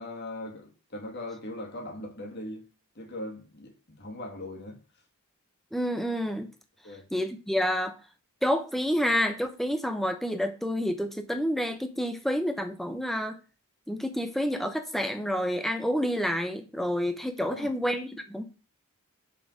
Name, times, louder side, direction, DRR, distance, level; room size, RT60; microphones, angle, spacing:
voice 1, 0.0-2.6 2.9-4.8 6.8-7.0 17.4-17.7, left 1 dB, 50° left, 2.7 m, -39 dB
voice 2, 5.7-6.5 7.1-7.9 8.4-13.4 13.9-18.4, equal, ahead, 1.1 m, -29 dB
7.2 x 4.9 x 6.4 m
head